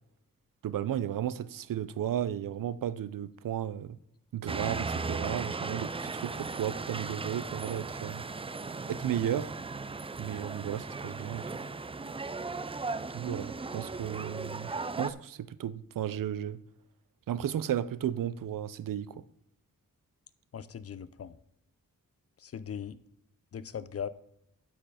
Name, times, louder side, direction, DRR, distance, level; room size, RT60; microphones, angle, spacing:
voice 1, 0.6-4.0 4.3-8.3 8.9-9.6 10.2-11.4 13.1-16.6 17.3-19.2, right 10 dB, 75° right, 0.5 m, -34 dB
sound 1, 4.5-15.1, right 3 dB, 15° right, 0.4 m, -37 dB
voice 2, 20.5-21.4 22.4-22.9 23.5-24.1, left 7 dB, 45° left, 0.5 m, -39 dB
12.0 x 4.6 x 4.9 m
wide cardioid pair, 90°, 33 cm